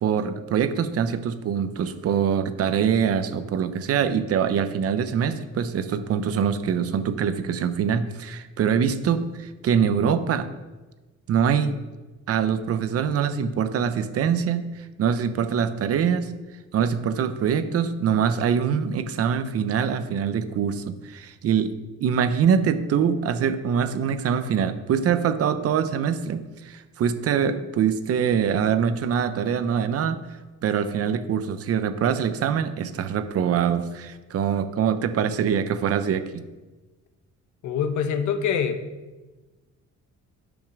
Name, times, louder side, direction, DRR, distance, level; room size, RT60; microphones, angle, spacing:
voice 1, 0.0-10.5 11.3-11.8 12.3-16.3 16.7-21.7 22.0-30.2 30.6-36.4, right 7 dB, 50° right, 10 dB, 0.7 m, -24 dB
voice 2, 37.6-38.8, left 7 dB, 70° left, 8 dB, 1.0 m, -24 dB
10.5 x 5.3 x 6.0 m, 1.2 s
cardioid pair, 175°, 30 cm